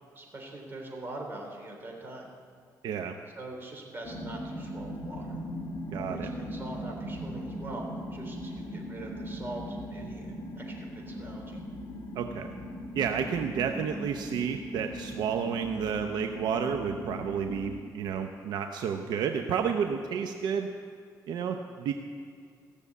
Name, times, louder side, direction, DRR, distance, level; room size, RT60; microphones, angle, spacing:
voice 1, 0.1-2.3 3.3-5.4 5.9-10.3 10.6-11.6, right 2 dB, 30° right, 0 dB, 3.3 m, -43 dB
voice 2, 2.8-3.1 5.9-6.3 12.2-12.5 12.9-20.7 21.3-21.9, right 7 dB, 75° right, 5 dB, 0.7 m, -31 dB
sound 1, 4.0-17.8, equal, 45° left, 1.8 m, -39 dB
16.0 x 6.8 x 8.4 m, 2.2 s
cardioid pair, 105°, 7 cm